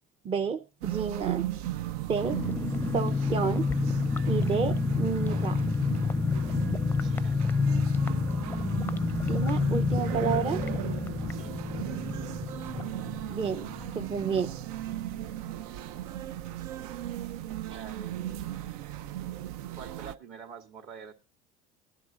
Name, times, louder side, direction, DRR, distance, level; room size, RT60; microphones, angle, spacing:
voice 1, 0.2-1.5 2.1-2.4 2.9-3.7 4.3-5.6 9.3-10.6 13.3-13.7 13.9-14.5 17.7-17.8, right 6 dB, 30° right, 0.7 m, -30 dB
sound 1, 0.8-20.1, right 13 dB, 85° right, 0.5 m, -37 dB
sound 2, 2.2-14.6 14.8-14.9 15.2-15.5, left 4 dB, 10° left, 0.5 m, -29 dB
voice 2, 6.9-7.4 11.3-11.5 15.4-15.8 17.7-18.5 19.8-21.1, right 7 dB, 55° right, 2.5 m, -47 dB
20.5 x 11.0 x 2.5 m
supercardioid pair, 110°, 19 cm